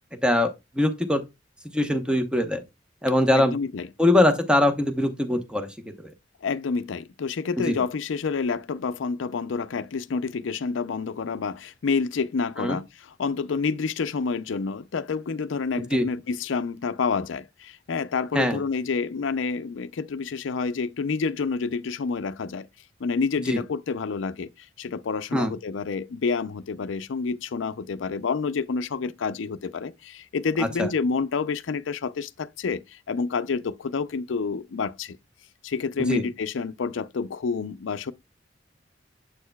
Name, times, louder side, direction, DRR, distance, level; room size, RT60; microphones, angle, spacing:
voice 1, 0.8-1.2 1.7-2.6 3.0-3.5 4.0-5.7 7.6-7.8 12.6-12.8 15.9-16.1 18.3-18.6 23.5-23.6 25.3-25.5 30.6-30.9 36.1-36.3, left 1 dB, 5° right, 0.9 m, -22 dB
voice 2, 3.4-3.9 6.4-22.7 23.0-24.5 24.8-35.2 35.6-38.1, left 5 dB, 90° left, 0.5 m, -28 dB
7.7 x 6.4 x 2.2 m
head